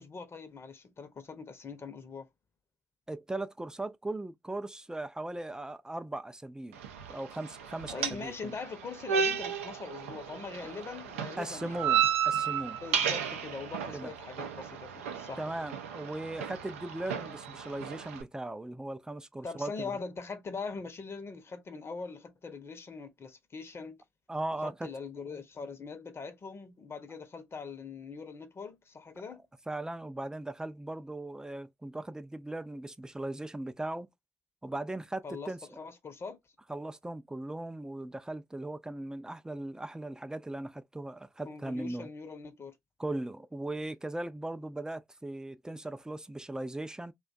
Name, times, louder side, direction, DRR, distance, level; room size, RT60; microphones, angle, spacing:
voice 1, 0.0-2.3 7.9-11.8 12.8-15.5 19.4-24.0 24.6-29.4 35.2-35.5 35.8-36.4 41.4-42.7, left 4 dB, 40° left, 0.7 m, -42 dB
voice 2, 3.1-6.8 7.1-8.5 10.6-10.7 11.4-12.8 13.9-14.1 15.4-19.9 24.3-24.9 29.7-34.1 34.6-35.6 36.7-42.1 43.0-47.1, right 2 dB, 10° right, 0.4 m, -38 dB
sound 1, 6.7-18.2, right 7 dB, 85° right, 0.4 m, -33 dB
2.5 x 2.2 x 2.4 m
hypercardioid pair, 45°, 7 cm